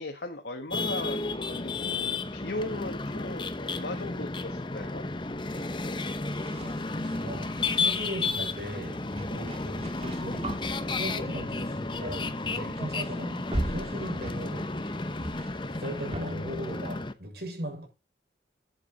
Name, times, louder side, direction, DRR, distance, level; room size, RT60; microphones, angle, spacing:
voice 1, 0.0-5.0, left 2 dB, 75° left, 1.6 m, -37 dB
sound 1, 0.7-17.1, left 3 dB, 25° left, 0.8 m, -32 dB
sound 2, 6.3-8.1 9.0-11.8 12.1-12.4 12.7-16.3, right 1 dB, 35° right, 1.9 m, -39 dB
voice 2, 7.0-10.5 10.9-14.7 15.6-17.8, right 1 dB, 70° right, 6.4 m, -38 dB
12.0 x 8.5 x 4.0 m
head